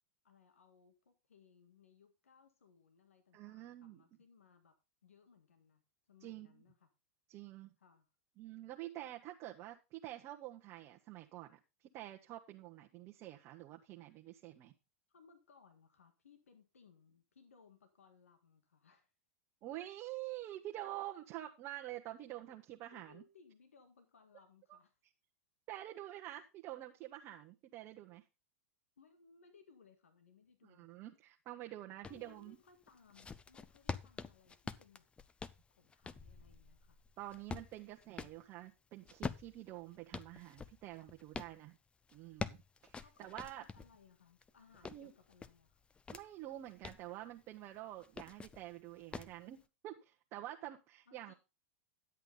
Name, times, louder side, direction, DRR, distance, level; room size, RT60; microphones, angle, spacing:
voice 1, 0.2-4.7 5.0-6.9 7.8-8.1 15.1-19.1 22.5-22.6 22.9-25.0 29.0-31.0 31.5-31.6 32.0-35.1 35.8-37.0 43.0-45.8 51.1-51.3, left 5 dB, 90° left, 7 dB, 1.7 m, -65 dB
voice 2, 3.3-4.0 6.2-6.5 7.3-7.7 8.4-14.7 19.6-23.2 24.7-24.8 25.7-28.2 30.6-32.6 37.2-41.8 42.1-42.6 42.8-43.6 44.8-45.1 46.1-51.3, right 14 dB, 40° right, 1 dB, 1.1 m, -48 dB
sound 1, 32.0-32.2 32.8-38.4 39.0-41.5 42.1-43.9 44.4-46.2 46.7-47.1 48.0-48.6 49.1-49.4, left 5 dB, 15° left, 0.5 m, -46 dB
11.0 x 8.2 x 3.8 m, 0.27 s
hypercardioid pair, 105°, 7 cm